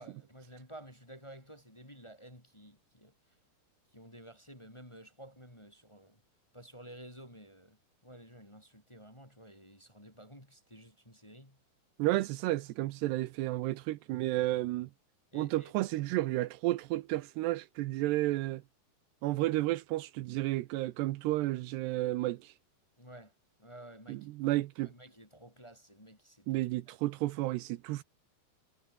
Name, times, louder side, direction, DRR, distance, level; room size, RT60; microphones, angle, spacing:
voice 1, 0.0-3.1 3.9-6.2 6.5-7.8 8.0-11.6 15.3-15.7 23.0-23.3 23.6-24.3 24.8-26.5 26.9-27.0, right 1 dB, 5° left, 3.2 m, -52 dB
voice 2, 12.0-14.9 15.3-18.6 19.2-22.5 24.1-24.9 26.5-28.0, right 17 dB, 80° right, 2.9 m, -32 dB
omnidirectional pair, 4.9 m